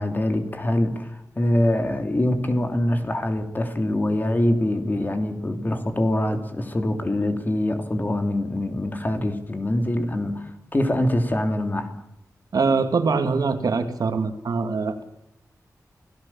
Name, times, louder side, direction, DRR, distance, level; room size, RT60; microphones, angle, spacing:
voice 1, 0.0-12.0, left 1 dB, 30° left, 6 dB, 3.0 m, -24 dB
voice 2, 12.5-15.0, right 4 dB, 85° right, 7 dB, 2.6 m, -23 dB
28.0 x 17.5 x 7.3 m, 0.83 s
wide cardioid pair, 135°, 6 cm